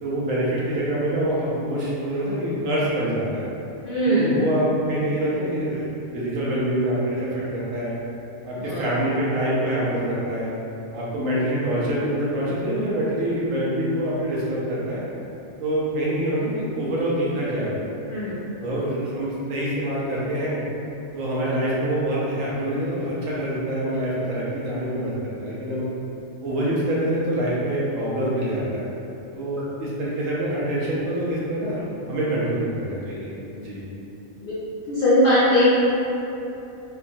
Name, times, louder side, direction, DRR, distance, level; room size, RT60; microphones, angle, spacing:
voice 1, 0.0-3.5 4.1-7.9 8.5-10.5 10.9-15.0 15.6-17.8 18.6-20.6 21.1-25.1 25.4-25.9 26.4-28.9 29.3-33.9, right 1 dB, 80° right, -7 dB, 1.1 m, -25 dB
voice 2, 3.8-4.5 8.6-8.8 18.1-18.4 29.6-29.7 34.4-34.6 34.9-35.6, equal, 70° left, -10 dB, 0.5 m, -20 dB
2.8 x 2.2 x 2.6 m, 2.9 s
omnidirectional pair, 1.4 m